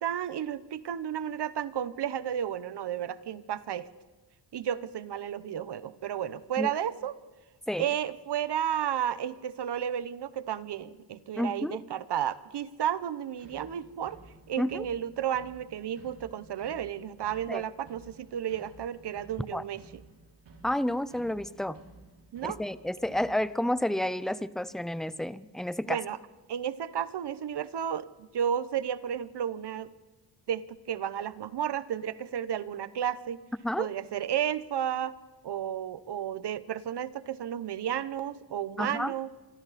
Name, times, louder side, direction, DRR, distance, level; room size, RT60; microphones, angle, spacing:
voice 1, 0.0-3.9 4.5-7.1 7.8-14.2 14.5-19.8 22.3-22.6 25.9-26.2 26.5-29.9 30.5-33.4 33.8-35.2 35.4-39.3, right 9 dB, 70° right, 15 dB, 1.0 m, -32 dB
voice 2, 11.4-11.8 14.6-14.9 17.5-17.6 19.5-19.6 20.6-21.8 22.4-26.0 33.6-33.9 38.8-39.1, left 1 dB, ahead, 15 dB, 0.6 m, -30 dB
sound 1, 13.4-23.4, right 3 dB, 85° right, 5.5 m, -54 dB
26.0 x 25.0 x 4.2 m, 1.2 s
wide cardioid pair, 135°, 42 cm